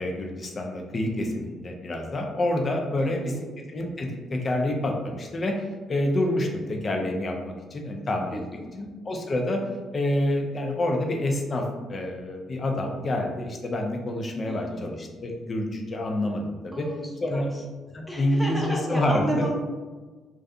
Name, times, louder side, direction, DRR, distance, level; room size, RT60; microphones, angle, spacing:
voice 1, 0.0-3.3 3.7-8.4 8.7-9.6 9.9-16.9 17.2-17.5 17.9-19.4, left 1 dB, 40° left, 2 dB, 0.5 m, -27 dB
voice 2, 3.0-3.4 8.3-8.7 14.5-14.8 16.7-17.4 18.1-19.5, equal, 5° left, -2 dB, 0.7 m, -33 dB
2.5 x 2.3 x 2.4 m, 1.3 s
hypercardioid pair, 50°, 0 cm